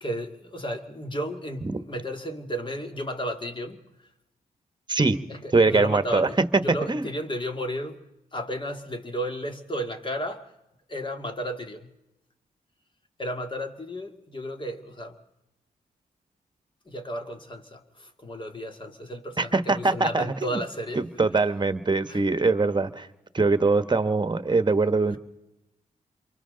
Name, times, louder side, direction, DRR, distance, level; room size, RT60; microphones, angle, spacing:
voice 1, 0.0-3.8 5.3-8.0 8.3-10.5 10.9-11.9 13.2-15.2 16.9-21.1 22.1-22.2 25.1-25.2, equal, 30° left, 2.2 m, -33 dB
voice 2, 5.5-6.6 6.9-7.1 19.4-20.6 20.9-23.1 23.3-25.2, right 3 dB, 30° right, 1.3 m, -23 dB
28.0 x 24.0 x 3.9 m
supercardioid pair, 50°, 15 cm